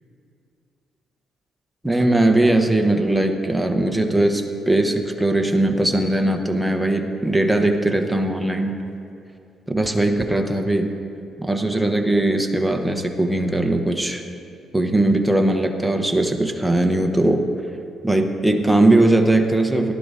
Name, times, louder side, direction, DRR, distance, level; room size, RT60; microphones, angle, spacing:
voice 1, 1.8-8.8 9.7-10.9 11.4-14.2 14.7-17.4 18.0-19.9, right 1 dB, 5° right, 4 dB, 1.1 m, -19 dB
18.5 x 12.0 x 2.8 m, 2.7 s
cardioid pair, 90°, 0 cm